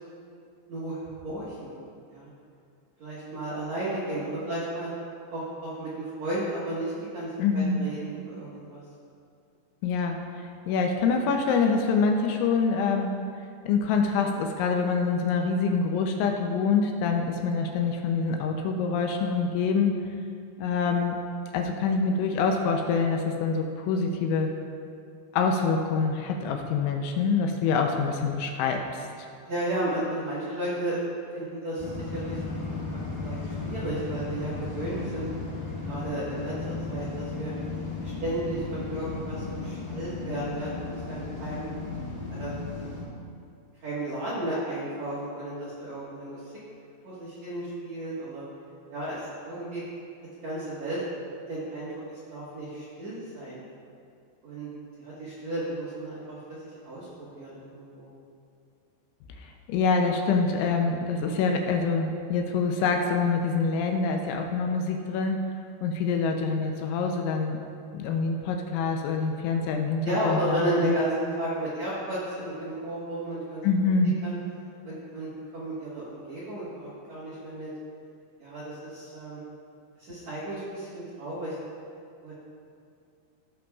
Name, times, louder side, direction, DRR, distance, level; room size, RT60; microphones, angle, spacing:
voice 1, 0.7-1.7 2.1-2.3 3.0-4.9 5.3-7.3 7.5-8.8 29.5-31.0 31.3-35.3 35.9-36.5 36.9-37.5 38.0-41.7 42.3-42.5 43.8-46.5 47.0-48.4 48.9-49.8 50.4-51.0 51.5-53.6 54.4-54.7 55.0-58.1 70.0-73.6 74.0-74.4 74.8-77.7 78.4-79.4 80.0-81.6 82.2-82.3, right 1 dB, 60° right, -11 dB, 1.8 m, -33 dB
voice 2, 7.4-7.8 9.8-10.2 10.7-13.1 13.7-20.0 20.6-21.2 21.5-24.5 25.3-29.1 59.4-65.4 65.8-67.6 67.9-70.9 73.6-74.2, left 4 dB, 80° left, 3 dB, 2.9 m, -25 dB
sound 1, 31.8-43.0, left 3 dB, 50° left, 3.1 m, -35 dB
17.5 x 6.3 x 2.3 m, 2.4 s
omnidirectional pair, 5.6 m